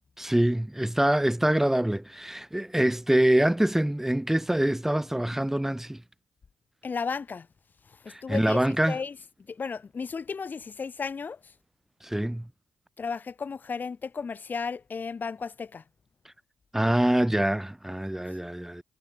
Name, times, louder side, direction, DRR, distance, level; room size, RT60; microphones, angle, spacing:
voice 1, 0.2-6.0 8.1-9.0 12.0-12.4 16.7-18.8, right 1 dB, 5° right, 3.9 m, -25 dB
voice 2, 6.8-7.5 7.9-9.2 9.5-11.4 13.0-15.8, left 5 dB, 40° left, 5.7 m, -34 dB
hypercardioid pair, 45°, 5 cm